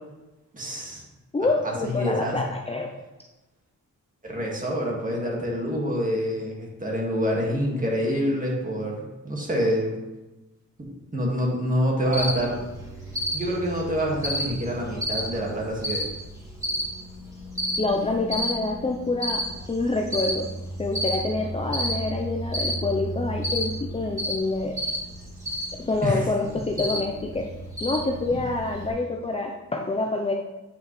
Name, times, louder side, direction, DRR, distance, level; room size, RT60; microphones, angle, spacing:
voice 1, 0.5-1.0 1.6-2.4 4.2-10.0 10.8-12.6 13.3-16.0 26.0-26.2, equal, 25° right, -2 dB, 1.8 m, -26 dB
voice 2, 1.3-2.9 17.8-20.5 20.8-24.8 25.7-27.5 27.8-30.3, left 2 dB, 20° left, 0 dB, 0.6 m, -27 dB
Cricket, 12.1-28.9, equal, 10° right, 1.7 m, -32 dB
8.8 x 5.2 x 3.2 m, 1.0 s
cardioid pair, 105°, 31 cm